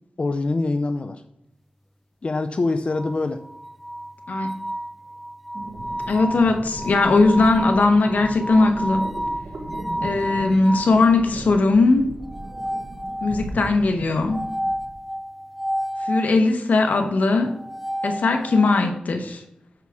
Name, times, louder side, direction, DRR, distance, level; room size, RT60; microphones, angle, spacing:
voice 1, 0.2-1.2 2.2-3.4, left 3 dB, 45° left, 7 dB, 0.5 m, -24 dB
sound 1, 2.9-11.0 12.3-13.6 14.3-16.3 17.5-18.8, equal, 5° right, 0.5 m, -31 dB
sound 2, 5.5-15.0, right 2 dB, 75° right, 1.4 m, -37 dB
voice 2, 6.1-9.0 10.0-12.1 13.2-14.4 16.0-17.5 18.0-19.4, left 3 dB, 85° left, 5 dB, 1.1 m, -19 dB
8.1 x 6.2 x 3.6 m, 0.79 s
wide cardioid pair, 80°, 3 cm